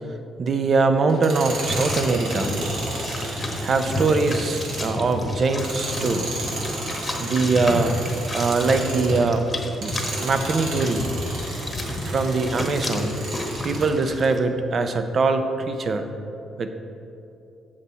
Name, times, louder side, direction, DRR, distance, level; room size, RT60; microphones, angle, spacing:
voice 1, 0.4-2.6 3.6-6.2 7.2-7.9 8.3-9.5 9.8-11.1 12.1-13.2 13.6-16.1 16.6-16.7, right 3 dB, 50° right, 8 dB, 0.6 m, -22 dB
Tools, 1.1-9.3 9.7-13.9, right 2 dB, 85° right, 1.9 m, -33 dB
sound 1, 1.4-14.4, left 1 dB, 20° left, 1.1 m, -31 dB
8.2 x 7.5 x 4.1 m, 2.8 s
cardioid pair, 90°, 0 cm